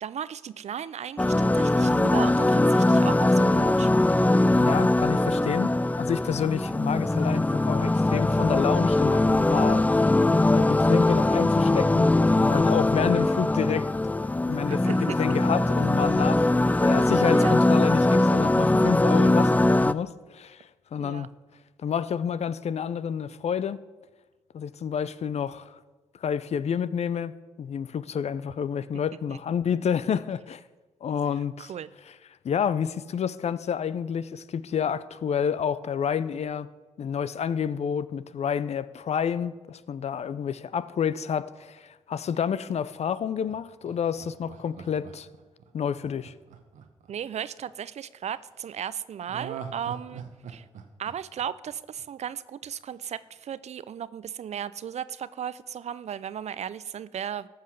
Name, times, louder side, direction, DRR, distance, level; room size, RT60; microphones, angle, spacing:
voice 1, 0.0-3.9 7.3-7.4 14.7-15.2 16.6-17.6 21.0-21.3 29.3-29.4 31.6-31.9 47.1-50.6 51.0-57.5, right 9 dB, 60° right, 0.5 m, -36 dB
sound 1, 1.2-19.9, left 2 dB, 10° left, 0.4 m, -21 dB
voice 2, 4.5-9.8 10.5-13.9 14.5-16.5 16.8-21.3 21.8-23.8 24.5-25.8 26.2-30.6 31.0-31.7 32.4-36.7 37.0-45.3 45.7-46.3, left 7 dB, 60° left, 0.5 m, -29 dB
Laughter, 43.5-47.7 49.3-52.3 52.6-52.7, right 7 dB, 80° right, 1.0 m, -43 dB
14.0 x 5.6 x 6.4 m
supercardioid pair, 45°, 13 cm